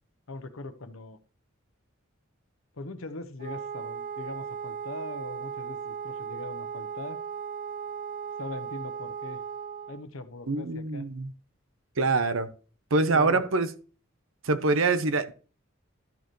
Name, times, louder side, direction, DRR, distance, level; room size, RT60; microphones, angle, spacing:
voice 1, 0.3-1.2 2.7-7.2 8.4-9.4 9.9-11.1 13.1-13.4, left 3 dB, 85° left, 0.9 m, -41 dB
Wind instrument woodwind instrument, 3.4-10.0, right 7 dB, 40° right, 0.4 m, -37 dB
voice 2, 10.5-11.3 12.0-12.5 12.9-13.7 14.4-15.3, right 3 dB, 75° right, 0.9 m, -24 dB
12.0 x 6.8 x 3.1 m
head